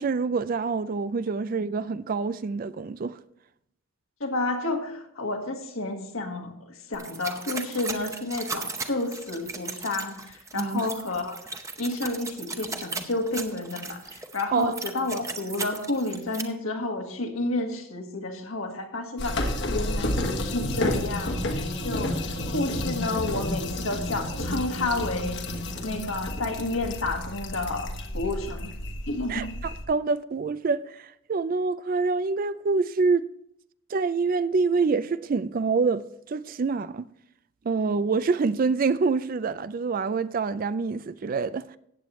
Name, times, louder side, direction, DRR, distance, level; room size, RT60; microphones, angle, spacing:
voice 1, 0.0-3.2 10.5-10.9 14.5-14.7 29.3-33.3 33.9-37.1 37.6-41.8, right 4 dB, 40° right, 0.3 m, -26 dB
voice 2, 4.2-11.4 11.8-25.4 25.8-28.7 29.1-29.6, left 2 dB, 70° left, 1.6 m, -31 dB
sound 1, 6.9-16.4, right 4 dB, 15° right, 0.7 m, -37 dB
sound 2, 19.2-29.8, left 1 dB, 55° left, 1.3 m, -31 dB
14.5 x 8.7 x 3.1 m
head